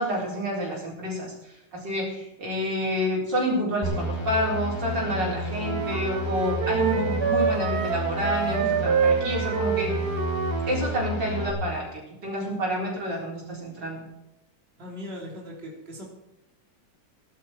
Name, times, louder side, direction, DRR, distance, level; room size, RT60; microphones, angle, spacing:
voice 1, 0.0-1.3 1.7-9.9 10.7-14.0, equal, 80° right, -3 dB, 5.2 m, -28 dB
sound 1, 3.8-11.5, left 1 dB, 25° left, 6.5 m, -31 dB
sound 2, 5.6-10.8, right 6 dB, 60° right, 2.0 m, -27 dB
voice 2, 14.8-16.0, left 1 dB, 35° right, -2 dB, 3.4 m, -39 dB
18.5 x 12.0 x 4.6 m, 0.87 s
omnidirectional pair, 1.9 m